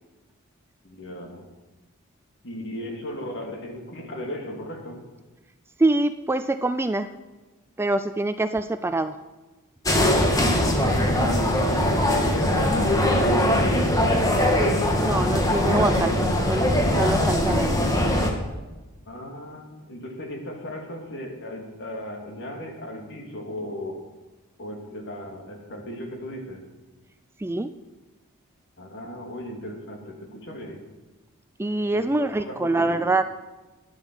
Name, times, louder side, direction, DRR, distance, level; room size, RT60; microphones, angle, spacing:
voice 1, 0.8-1.5 2.4-5.0 9.9-15.4 19.1-24.0 24.6-26.6 28.8-30.8 31.9-33.0, left 1 dB, 55° left, 2 dB, 2.6 m, -36 dB
voice 2, 5.8-7.1 7.8-9.2 15.0-17.9 27.4-27.7 31.6-33.2, right 2 dB, 10° right, 11 dB, 0.3 m, -25 dB
sound 1, 9.9-18.3, left 1 dB, 15° left, 1.6 m, -21 dB
12.0 x 10.5 x 6.3 m, 1.2 s
head